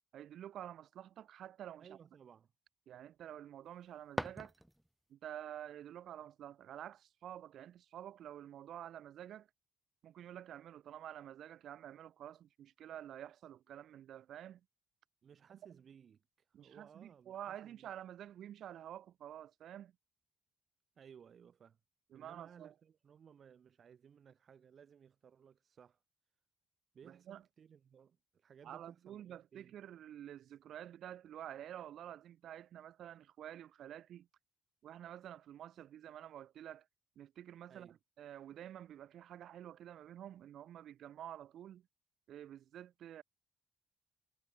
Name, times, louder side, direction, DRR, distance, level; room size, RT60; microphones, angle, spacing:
voice 1, 0.1-2.0 2.9-4.5 5.1-9.5 10.0-14.6 16.5-19.9 22.1-22.7 27.1-27.4 28.6-34.3 34.8-36.9 37.2-41.8 42.3-43.2, right 11 dB, 70° right, 0.6 m, -49 dB
voice 2, 1.8-2.5 15.2-17.9 21.0-21.8 22.1-26.0 26.9-29.7 37.7-38.0, right 7 dB, 55° right, 2.1 m, -60 dB
sound 1, 3.6-5.1, equal, 5° right, 1.0 m, -44 dB
cardioid pair, 90°, 0 cm